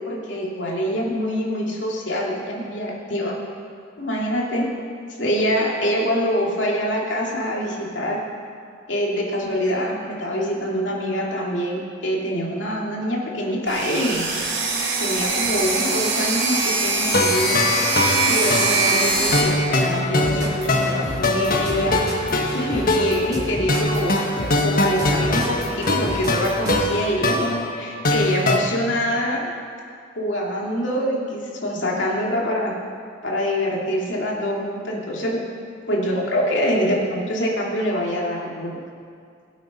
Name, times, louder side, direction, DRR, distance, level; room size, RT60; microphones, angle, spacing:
voice 1, 0.0-3.4 4.0-4.7 5.2-8.2 8.9-14.2 15.0-17.6 18.3-22.0 22.5-24.2 24.6-29.5 30.2-32.7 33.2-35.4 35.9-38.8, equal, 70° left, -2 dB, 2.8 m, -25 dB
sound 1, 13.7-19.4, right 3 dB, 65° right, 3.5 m, -22 dB
sound 2, 17.1-28.6, left 2 dB, 50° left, 1.4 m, -23 dB
sound 3, 20.2-27.1, equal, 20° right, 2.0 m, -32 dB
22.5 x 8.2 x 5.5 m, 2.3 s
head